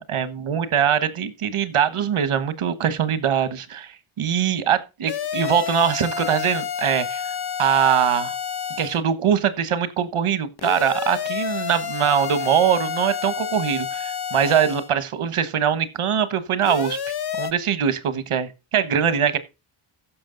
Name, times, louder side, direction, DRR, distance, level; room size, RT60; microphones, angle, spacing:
voice 1, 0.1-7.3 7.6-8.3 8.8-17.0 17.4-19.4, right 8 dB, 80° right, 1.4 m, -22 dB
sound 1, 5.1-9.0 10.6-14.9 16.6-17.5, left 8 dB, 50° left, 1.0 m, -29 dB
15.0 x 6.3 x 3.9 m
wide cardioid pair, 115°, 50 cm